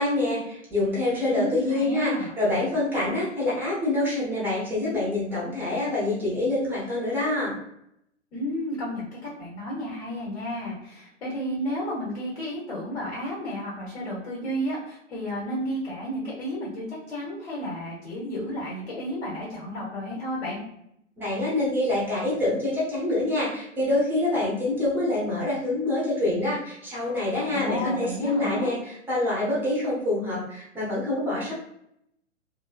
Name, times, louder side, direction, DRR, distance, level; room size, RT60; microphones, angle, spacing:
voice 1, 0.0-7.5 21.2-31.5, left 2 dB, 5° right, -6 dB, 0.5 m, -26 dB
voice 2, 1.3-2.3 8.3-9.1 9.4-20.6 27.5-28.7, equal, 60° left, -5 dB, 1.2 m, -32 dB
2.6 x 2.6 x 2.2 m, 0.76 s
figure-of-eight pair, 120°, 37 cm